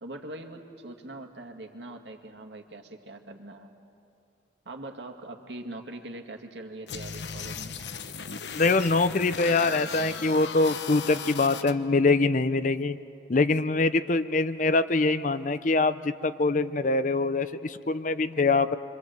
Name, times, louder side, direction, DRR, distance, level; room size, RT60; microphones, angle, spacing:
voice 1, 0.0-3.7 4.7-7.8, right 2 dB, 75° right, 4 dB, 2.1 m, -42 dB
sound 1, 6.9-11.7, left 6 dB, 75° left, 1.0 m, -37 dB
voice 2, 8.5-13.0 13.3-18.8, left 3 dB, 45° left, 13 dB, 0.6 m, -24 dB
28.0 x 24.5 x 7.9 m, 2.6 s
head